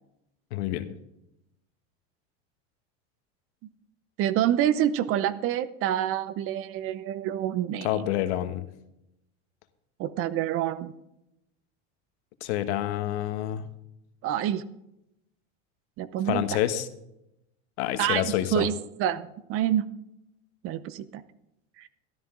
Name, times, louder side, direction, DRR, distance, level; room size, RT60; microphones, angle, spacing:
voice 1, 0.5-0.9 7.8-8.6 12.4-13.7 16.3-16.9 17.8-18.7, left 13 dB, 80° left, 10 dB, 1.3 m, -28 dB
voice 2, 4.2-8.0 10.0-10.9 14.2-14.6 16.0-16.4 18.0-18.7 19.0-19.8 20.6-21.2 21.8-21.9, right 11 dB, 40° right, 15 dB, 0.7 m, -27 dB
13.0 x 13.0 x 3.8 m, 0.84 s
supercardioid pair, 145°, 33 cm